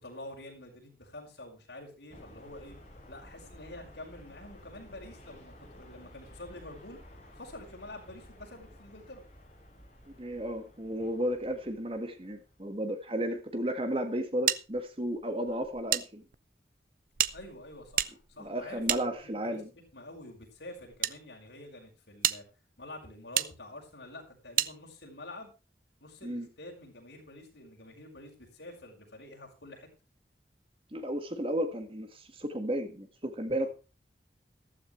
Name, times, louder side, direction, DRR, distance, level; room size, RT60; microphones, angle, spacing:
voice 1, 0.0-2.8 3.1-7.0 7.4-9.2 17.3-19.6 19.9-22.4 22.8-25.5 26.0-29.9 33.6-33.7, left 1 dB, 80° left, 0 dB, 5.6 m, -47 dB
sound 1, 2.1-12.9, left 1 dB, 40° left, 5.8 m, -53 dB
voice 2, 10.2-16.2 18.4-19.7 26.2-26.5 30.9-33.7, equal, 30° right, 7 dB, 1.8 m, -33 dB
sound 2, 14.5-16.0 16.3-16.4 17.1-19.6 20.4-21.1 21.7-21.8 22.2-22.4 23.3-23.5 24.6-24.7, right 12 dB, 50° right, 0.6 m, -31 dB
14.5 x 13.0 x 3.3 m, 0.30 s
head